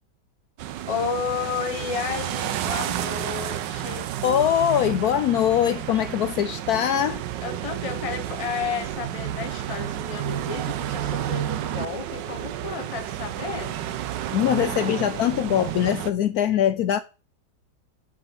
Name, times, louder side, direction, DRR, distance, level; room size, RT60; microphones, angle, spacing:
sound 1, 0.6-16.1, right 11 dB, 80° right, 1.4 m, -31 dB
voice 1, 0.9-4.1 7.4-13.8, left 6 dB, 30° left, 0.7 m, -32 dB
voice 2, 4.2-7.2 14.3-17.0, left 10 dB, 70° left, 1.0 m, -22 dB
8.6 x 5.1 x 6.0 m
omnidirectional pair, 1.9 m